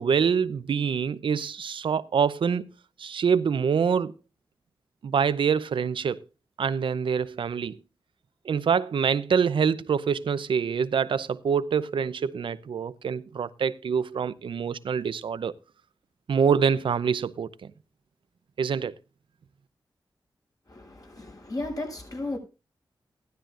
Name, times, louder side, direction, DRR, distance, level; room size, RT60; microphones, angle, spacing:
voice 1, 0.0-2.7 3.0-4.1 5.0-6.2 6.6-7.8 8.4-15.5 16.3-17.7 18.6-18.9, right 6 dB, 80° right, 0.7 m, -25 dB
voice 2, 20.7-22.4, left 2 dB, 45° left, 7.6 m, -34 dB
16.5 x 12.5 x 2.5 m
cardioid pair, 60°, 8 cm